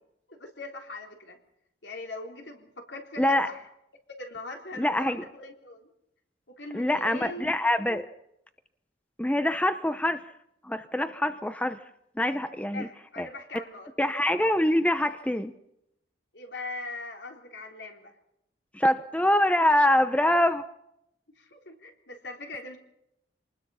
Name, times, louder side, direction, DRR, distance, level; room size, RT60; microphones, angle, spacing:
voice 1, 0.3-1.4 1.8-3.6 4.1-5.9 6.6-7.5 12.7-13.9 16.3-18.1 21.4-22.8, left 2 dB, 70° left, 2 dB, 3.7 m, -41 dB
voice 2, 3.2-3.5 4.8-5.2 6.7-8.1 9.2-10.2 10.6-11.8 12.2-12.9 13.2-13.3 14.0-15.5 18.7-20.6, left 1 dB, 5° left, 9 dB, 0.8 m, -24 dB
26.5 x 20.0 x 5.7 m, 0.78 s
head